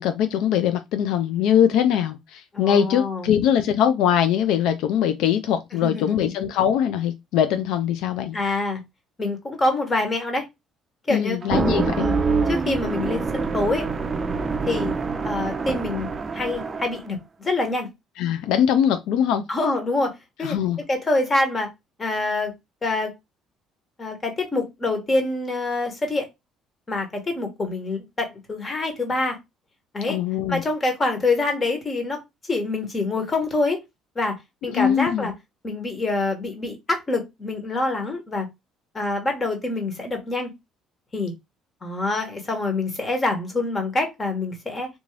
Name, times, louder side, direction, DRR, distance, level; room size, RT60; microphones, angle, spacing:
voice 1, 0.0-8.4 11.1-12.1 18.2-19.4 20.4-20.8 30.1-30.6 34.7-35.3, left 9 dB, 80° left, 0.4 m, -22 dB
voice 2, 2.5-3.3 5.7-6.3 8.3-8.8 9.2-10.5 11.1-11.4 12.0-12.2 12.5-13.9 14.6-14.9 15.2-17.9 19.5-20.6 20.9-21.7 22.0-22.5 22.8-23.1 24.0-26.3 26.9-29.4 29.9-30.2 30.5-32.2 32.5-33.8 34.1-35.3 35.6-38.5 38.9-40.5 41.1-41.3 41.8-44.9, left 2 dB, 25° left, 1.3 m, -26 dB
sound 1, 11.4-17.0, right 4 dB, 30° right, 0.4 m, -25 dB
3.5 x 2.5 x 3.2 m
cardioid pair, 105°, 0 cm